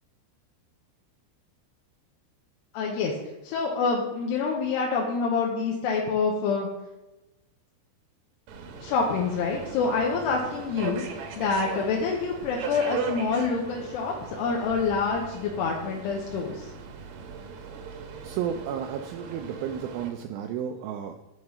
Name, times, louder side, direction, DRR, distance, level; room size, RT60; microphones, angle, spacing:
voice 1, 2.7-3.1 3.4-6.7 8.8-11.0 11.4-16.7, left 4 dB, 85° left, -2 dB, 3.0 m, -27 dB
Subway metro underground, 8.5-20.1, right 5 dB, 70° right, 2.2 m, -38 dB
voice 2, 18.2-21.1, right 8 dB, 90° right, 6 dB, 2.1 m, -32 dB
10.5 x 4.8 x 5.5 m, 1.0 s
omnidirectional pair, 4.8 m